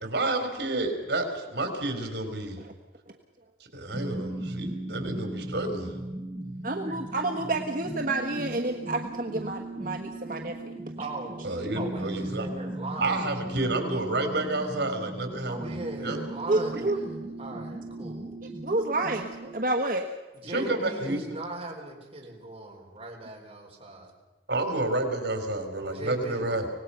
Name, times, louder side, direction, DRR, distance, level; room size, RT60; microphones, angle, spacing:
voice 1, 0.0-2.6 3.7-5.9 11.4-12.5 13.0-15.7 16.0-16.2 16.7-16.8 20.5-21.2 24.5-26.7, right 2 dB, 75° right, 6 dB, 3.8 m, -30 dB
sound 1, 3.9-19.5, right 1 dB, 5° right, 5.5 m, -37 dB
voice 2, 6.6-10.7 16.5-17.0 18.6-20.1, right 2 dB, 50° right, 3 dB, 1.3 m, -29 dB
voice 3, 11.0-11.5 11.7-13.3 15.4-18.3 20.3-24.1 25.9-26.5, right 2 dB, 35° right, -2 dB, 4.8 m, -39 dB
24.5 x 19.5 x 5.7 m, 1.2 s
head